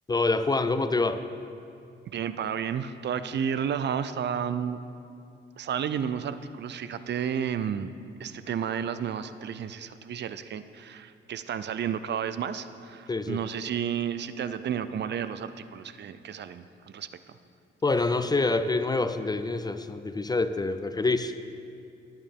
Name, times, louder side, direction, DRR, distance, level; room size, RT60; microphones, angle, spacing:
voice 1, 0.1-1.2 13.1-13.4 17.8-21.3, left 3 dB, 20° left, 11 dB, 0.4 m, -26 dB
voice 2, 2.1-4.8 5.6-7.9 8.2-17.4, right 8 dB, 60° right, 12 dB, 0.5 m, -32 dB
18.0 x 8.9 x 3.6 m, 2.5 s
wide cardioid pair, 130°, 21 cm